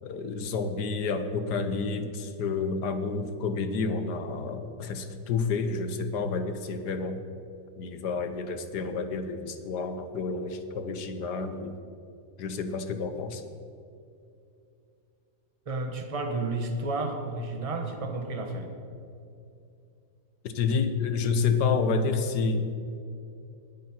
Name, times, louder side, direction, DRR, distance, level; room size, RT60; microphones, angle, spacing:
voice 1, 0.0-7.2 7.8-11.7 12.4-13.4 20.4-22.7, left 4 dB, 70° left, 9 dB, 1.5 m, -29 dB
voice 2, 15.7-18.7, right 2 dB, 20° right, 4 dB, 1.1 m, -31 dB
19.5 x 9.4 x 4.5 m, 2.6 s
omnidirectional pair, 1.9 m